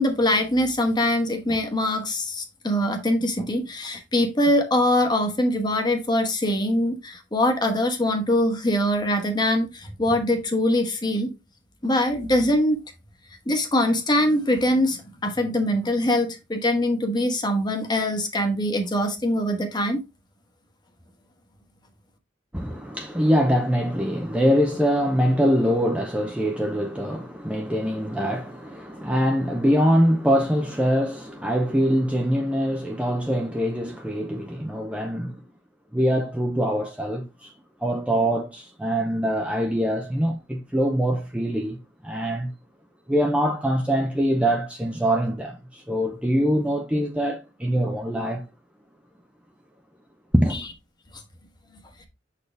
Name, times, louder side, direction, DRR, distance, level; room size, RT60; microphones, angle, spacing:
voice 1, 0.0-11.3 11.8-12.8 13.5-20.0, left 1 dB, 25° left, 1.1 m, -23 dB
voice 2, 22.5-35.4 35.9-37.5 37.8-41.8 42.0-42.5 43.1-48.5 50.3-50.6, equal, 5° right, 0.6 m, -23 dB
6.6 x 4.3 x 3.3 m
head